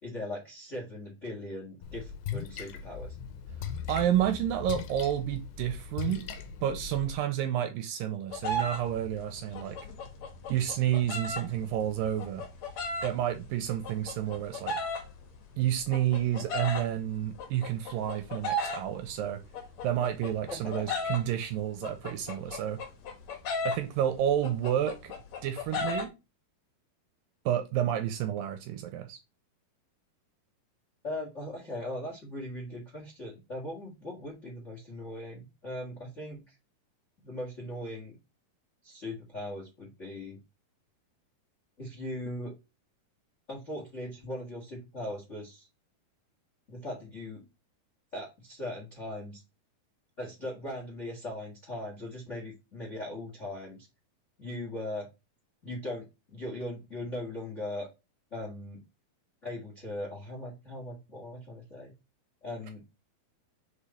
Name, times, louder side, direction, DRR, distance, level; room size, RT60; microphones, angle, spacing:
voice 1, 0.0-3.2 9.6-9.8 20.5-21.1 31.0-36.5 37.2-38.1 38.8-40.4 41.8-42.5 43.5-45.7 46.7-47.4 48.1-49.4 50.2-53.9 54.4-55.1 55.6-57.9 58.3-58.8 59.4-61.9 62.4-62.8, left 1 dB, 45° left, 0.9 m, -39 dB
Splash splatter, 1.8-7.1, left 7 dB, 80° left, 2.5 m, -39 dB
voice 2, 3.9-6.3 6.6-9.8 10.5-12.5 13.0-14.8 15.6-19.4 19.8-22.8 23.7-25.1 25.4-26.1 27.5-29.2, right 11 dB, 80° right, 2.1 m, -30 dB
sound 1, 8.3-21.3 21.6-26.0, left 2 dB, 60° left, 2.0 m, -36 dB
5.1 x 5.0 x 4.2 m
omnidirectional pair, 4.5 m